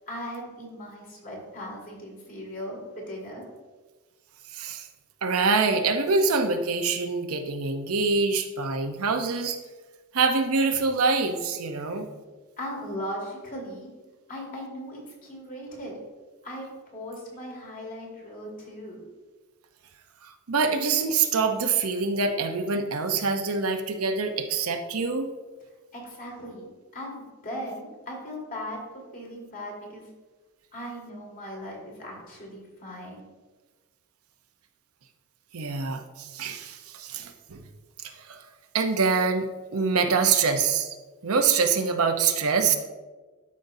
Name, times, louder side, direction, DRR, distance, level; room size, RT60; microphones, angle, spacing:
voice 1, 0.1-3.4 11.8-12.0 12.6-13.9 14.3-16.0 16.4-19.0 25.9-30.1 30.7-33.3, equal, 40° left, -2 dB, 2.1 m, -38 dB
voice 2, 4.5-4.9 5.2-9.6 10.1-12.1 20.2-25.3 35.5-37.7 38.0-38.4 38.7-40.9 41.2-42.8, right 4 dB, 85° right, 6 dB, 0.7 m, -25 dB
12.0 x 5.3 x 2.7 m, 1.3 s
head